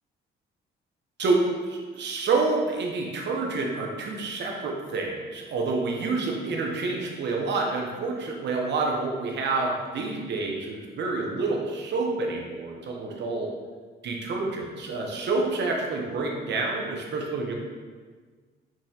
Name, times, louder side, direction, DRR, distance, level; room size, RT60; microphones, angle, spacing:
voice 1, 1.2-13.5 14.0-17.5, right 3 dB, 60° right, 0 dB, 0.9 m, -28 dB
6.1 x 2.9 x 2.8 m, 1.5 s
cardioid pair, 90°, 20 cm